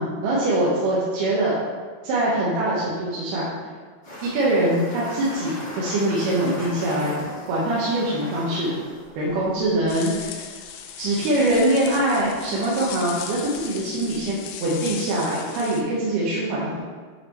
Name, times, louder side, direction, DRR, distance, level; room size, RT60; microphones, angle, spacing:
voice 1, 0.0-1.5 2.0-3.5 4.2-7.2 7.5-8.8 9.2-10.4 11.0-16.8, right 1 dB, 90° right, -7 dB, 3.1 m, -23 dB
sound 1, 4.0-15.0, left 1 dB, 25° left, 1.6 m, -41 dB
sound 2, 9.9-15.8, left 8 dB, 80° left, 2.1 m, -37 dB
9.2 x 5.4 x 3.0 m, 1.5 s
omnidirectional pair, 4.3 m